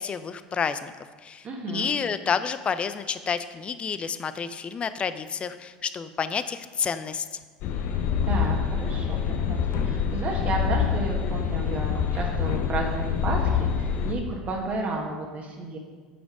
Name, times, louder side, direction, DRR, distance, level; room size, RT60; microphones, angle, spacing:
voice 1, 0.0-7.3, left 6 dB, 30° left, 13 dB, 0.5 m, -30 dB
voice 2, 1.4-1.9 8.2-15.8, right 3 dB, 40° right, 0 dB, 1.4 m, -32 dB
sound 1, 7.6-14.1, left 7 dB, 60° left, 0.8 m, -26 dB
8.6 x 5.1 x 4.8 m, 1.4 s
hypercardioid pair, 80°, 4 cm